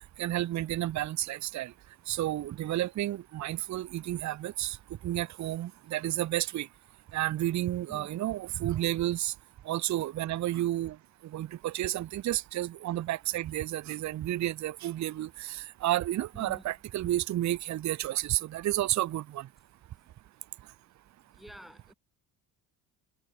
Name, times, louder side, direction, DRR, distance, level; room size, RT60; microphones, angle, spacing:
voice 1, 0.2-1.7 2.1-4.8 5.0-6.7 7.1-9.3 9.7-11.0 11.3-19.5, right 14 dB, 35° right, 0.5 m, -31 dB
voice 2, 16.3-16.8 21.4-21.9, equal, ahead, 3.1 m, -49 dB
hypercardioid pair, 55°, 49 cm